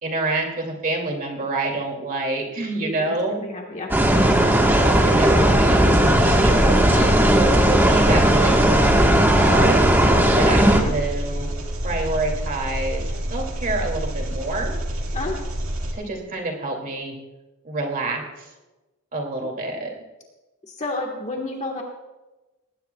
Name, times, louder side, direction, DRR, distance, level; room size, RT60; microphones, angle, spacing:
voice 1, 0.0-3.4 4.8-6.8 7.4-9.9 10.3-11.5 11.8-13.0 13.3-14.7 15.9-17.2 17.6-18.5 19.1-19.9, right 2 dB, 45° right, 1 dB, 2.5 m, -27 dB
voice 2, 2.8-4.0 6.8-7.1 10.8-10.9 15.1-15.3 19.4-19.5 20.6-21.8, left 2 dB, 35° left, 1 dB, 1.5 m, -31 dB
sound 1, 3.9-10.8, right 1 dB, 10° right, 1.4 m, -16 dB
Engine, 5.9-15.9, right 1 dB, 75° right, 2.2 m, -28 dB
19.5 x 17.5 x 2.3 m, 1.1 s
head